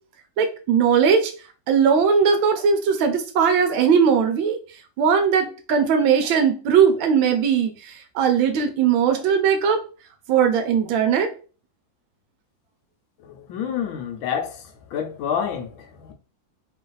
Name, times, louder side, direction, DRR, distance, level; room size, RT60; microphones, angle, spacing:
voice 1, 0.4-1.3 1.7-4.6 5.0-9.8 10.3-11.3, right 6 dB, 85° right, 1.5 m, -19 dB
voice 2, 13.5-14.5 14.9-15.7 16.0-16.1, left 8 dB, 80° left, 1.5 m, -27 dB
3.7 x 2.6 x 3.8 m
omnidirectional pair, 2.1 m